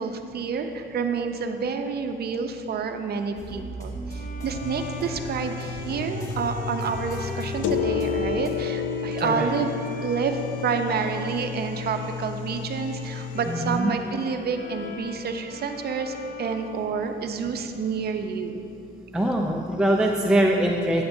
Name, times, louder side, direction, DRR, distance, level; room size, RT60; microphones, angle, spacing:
voice 1, 0.0-9.7 10.0-18.6, right 5 dB, 55° right, 6 dB, 0.6 m, -29 dB
sound 1, 3.4-8.5, equal, 15° left, 1.5 m, -36 dB
Bowed string instrument, 4.1-17.5, left 2 dB, 45° left, 0.8 m, -41 dB
sound 2, 4.6-13.8, left 7 dB, 75° left, 0.4 m, -32 dB
voice 2, 9.2-9.5 13.5-13.9 19.1-21.0, right 1 dB, 5° right, 0 dB, 0.5 m, -23 dB
9.2 x 7.9 x 2.6 m, 2.7 s
cardioid pair, 90°, 20 cm